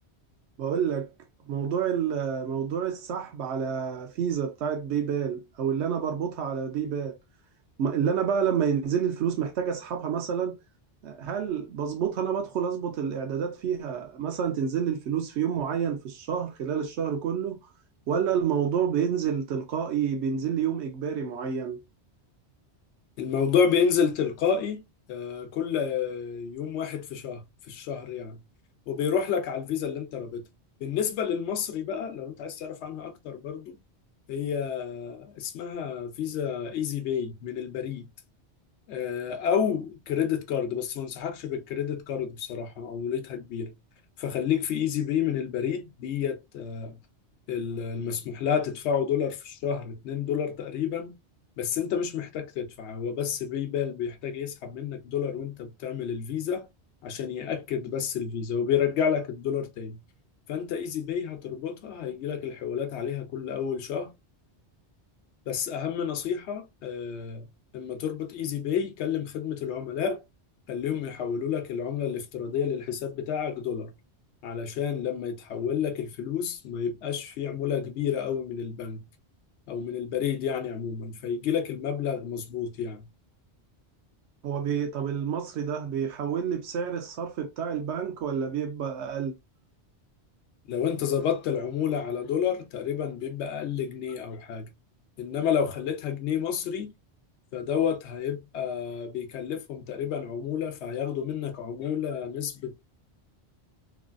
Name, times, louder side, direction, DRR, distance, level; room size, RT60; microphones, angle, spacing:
voice 1, 0.6-1.1 1.5-7.2 7.8-10.6 11.0-17.6 18.1-21.8 84.4-89.3, right 7 dB, 80° right, 0.9 m, -28 dB
voice 2, 23.2-24.8 25.1-28.4 28.9-30.4 30.8-33.8 34.3-38.1 38.9-43.7 44.2-47.0 47.5-51.1 51.6-56.7 57.0-60.0 60.5-64.1 65.5-67.5 67.7-70.2 70.7-73.9 74.4-79.0 79.7-83.1 90.7-94.7 95.2-96.9 97.5-102.9, left 7 dB, 85° left, 0.9 m, -30 dB
3.1 x 2.4 x 2.2 m
omnidirectional pair, 1.1 m